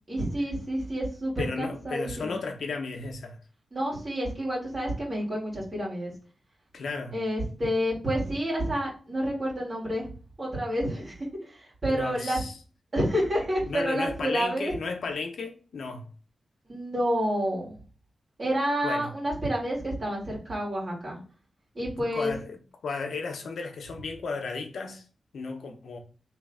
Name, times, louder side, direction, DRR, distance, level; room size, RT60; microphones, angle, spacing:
voice 1, 0.1-2.3 3.7-6.1 7.1-10.1 10.4-12.4 12.9-14.7 16.7-17.8 18.4-21.2 21.7-22.3, equal, 30° right, 2.3 m, -29 dB
voice 2, 1.4-3.4 6.7-7.2 11.9-12.6 13.7-16.1 18.8-19.1 22.1-25.1 25.3-26.0, left 4 dB, 80° left, 0.8 m, -34 dB
3.3 x 3.2 x 4.8 m
wide cardioid pair, 100°, 0 cm